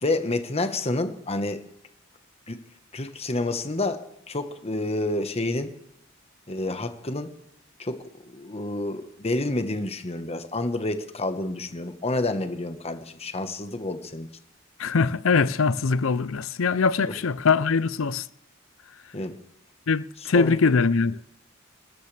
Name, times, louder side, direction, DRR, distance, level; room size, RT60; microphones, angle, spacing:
voice 1, 0.0-1.6 2.5-2.6 2.9-5.7 6.5-7.3 7.8-14.3 19.1-19.4 20.3-20.5, left 2 dB, 30° left, 1.3 m, -29 dB
voice 2, 14.8-18.2 19.9-21.2, left 4 dB, 85° left, 0.6 m, -22 dB
28.5 x 13.5 x 3.4 m
head